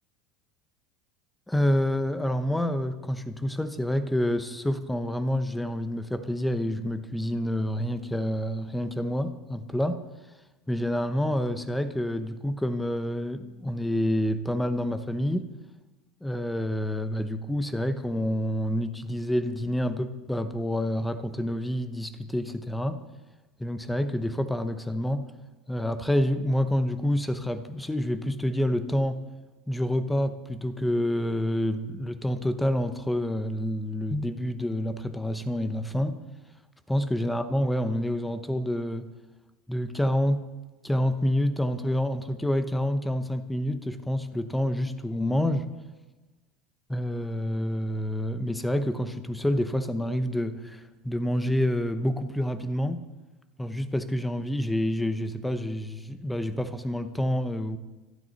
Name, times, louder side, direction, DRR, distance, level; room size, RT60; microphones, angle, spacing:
voice 1, 1.5-10.0 10.7-15.4 16.2-23.0 23.6-25.3 25.7-29.2 29.7-36.2 36.9-39.1 39.7-40.4 40.8-45.7 46.9-53.0 53.6-57.8, equal, 5° left, 10 dB, 0.7 m, -28 dB
27.5 x 9.4 x 4.1 m, 1.2 s
supercardioid pair, 165°, 0 cm